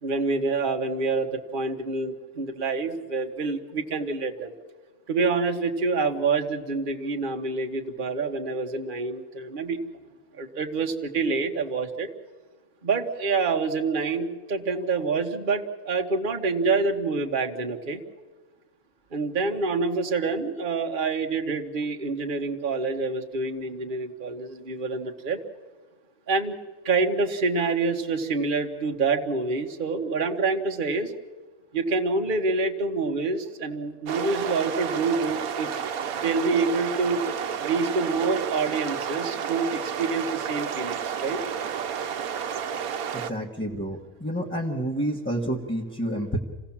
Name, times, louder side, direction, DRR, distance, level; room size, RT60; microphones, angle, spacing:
voice 1, 0.0-4.5 5.1-9.8 10.3-12.1 12.8-18.0 19.1-25.4 26.3-26.6 26.8-31.1 31.7-35.7 36.2-37.2 37.6-41.4, right 4 dB, 40° right, 4 dB, 1.4 m, -27 dB
sound 1, 34.1-43.3, right 7 dB, 80° right, 1.3 m, -31 dB
voice 2, 43.1-46.4, right 1 dB, 10° left, -2 dB, 1.5 m, -29 dB
27.0 x 17.0 x 7.3 m, 1.3 s
omnidirectional pair, 1.5 m